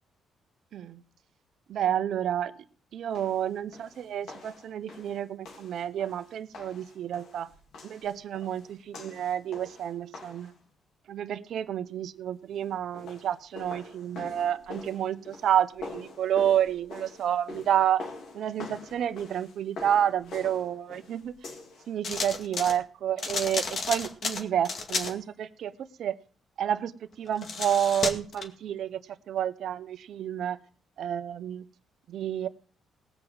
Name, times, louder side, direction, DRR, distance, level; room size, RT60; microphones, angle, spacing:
voice 1, 1.7-2.5 2.9-7.5 7.8-10.5 11.1-18.1 18.3-21.5 21.9-26.2 26.6-29.0 29.3-30.6 31.0-31.7 32.1-32.5, right 10 dB, 70° right, 12 dB, 0.9 m, -29 dB
sound 1, 3.1-10.6 12.8-21.9, left 3 dB, 75° left, 3.2 m, -45 dB
sound 2, 22.0-22.8 23.2-25.1 27.3-28.5, left 4 dB, 55° left, 2.2 m, -32 dB
18.0 x 6.1 x 8.0 m, 0.41 s
cardioid pair, 90°, 0 cm